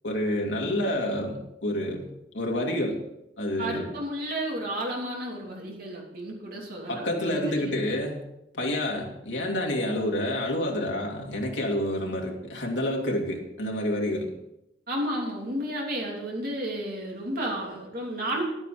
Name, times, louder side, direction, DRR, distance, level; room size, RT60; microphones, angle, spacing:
voice 1, 0.0-2.1 2.3-3.0 3.4-3.9 6.9-8.2 8.5-14.3, left 1 dB, 85° left, 0 dB, 2.4 m, -28 dB
voice 2, 3.6-7.7 14.9-18.4, right 1 dB, 50° right, -2 dB, 3.0 m, -32 dB
11.0 x 8.8 x 5.0 m, 0.86 s
head